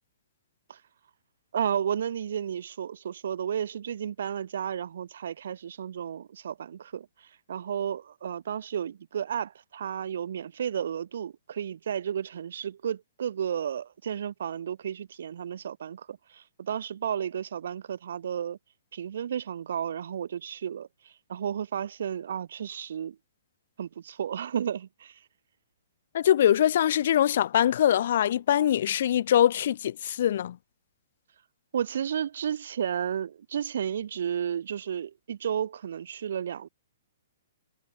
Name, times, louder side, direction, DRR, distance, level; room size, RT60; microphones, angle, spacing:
voice 1, 1.5-7.1 7.5-18.6 18.9-23.2 23.8-25.2 31.7-36.7, right 8 dB, 70° right, 2.0 m, -32 dB
voice 2, 26.1-30.6, left 11 dB, 60° left, 1.7 m, -23 dB
hypercardioid pair, 140°, 0 cm